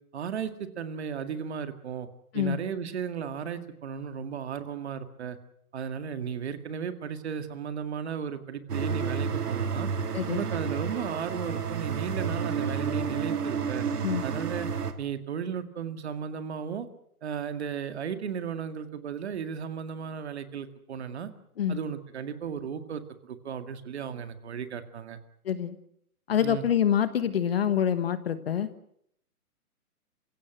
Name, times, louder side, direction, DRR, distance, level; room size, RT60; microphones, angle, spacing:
voice 1, 0.1-2.1 2.3-5.4 5.7-9.9 10.3-13.9 14.2-14.7 15.0-16.9 17.2-21.3 21.7-25.2 26.4-26.6, right 7 dB, 45° right, 9 dB, 2.1 m, -35 dB
sound 1, 8.7-14.9, right 6 dB, 85° right, 2.6 m, -31 dB
voice 2, 10.1-10.4 14.0-14.2 21.6-21.8 25.4-25.8 26.3-28.7, left 9 dB, 40° left, 13 dB, 1.3 m, -26 dB
27.5 x 16.5 x 7.8 m, 0.71 s
hypercardioid pair, 170°, 45 cm